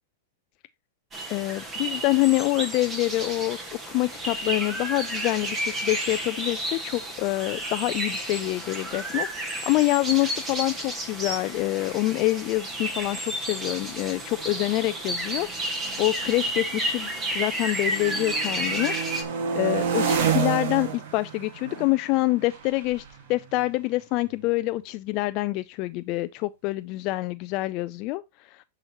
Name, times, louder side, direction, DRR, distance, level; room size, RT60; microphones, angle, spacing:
sound 1, 1.1-19.2, right 1 dB, 20° right, 1.5 m, -32 dB
voice 1, 1.3-3.6 3.9-17.1 17.3-18.9 19.2-23.0 23.3-28.6, left 20 dB, 40° left, 0.3 m, -26 dB
sound 2, 12.1-12.2 12.4-12.8 13.5-17.5 17.8-24.5, right 7 dB, 55° right, 1.7 m, -31 dB
9.0 x 5.0 x 2.9 m
supercardioid pair, 155°, 0 cm